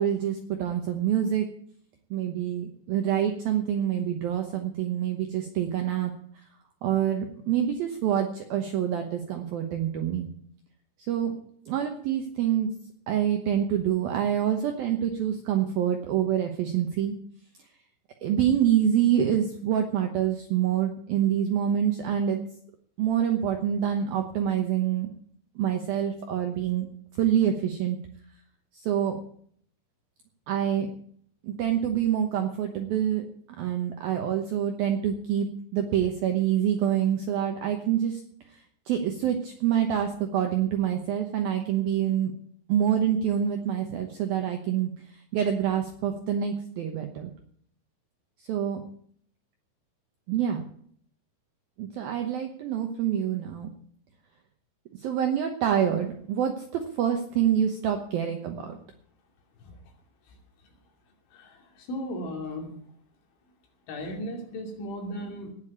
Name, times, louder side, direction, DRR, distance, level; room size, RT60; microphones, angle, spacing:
voice 1, 0.0-1.5 2.1-6.1 6.8-10.3 11.1-11.4 11.7-12.7 13.1-17.2 18.2-22.4 23.0-25.1 25.6-26.9 27.2-28.0 28.7-29.2 30.5-30.9 31.4-33.2 33.6-38.2 38.9-42.3 42.7-47.3 48.5-48.8 50.3-50.6 51.8-53.7 55.0-58.8, right 9 dB, 80° right, 5 dB, 2.2 m, -26 dB
voice 2, 61.3-62.7 63.9-65.5, equal, 70° left, 2 dB, 4.9 m, -36 dB
18.5 x 6.8 x 8.8 m, 0.62 s
omnidirectional pair, 5.8 m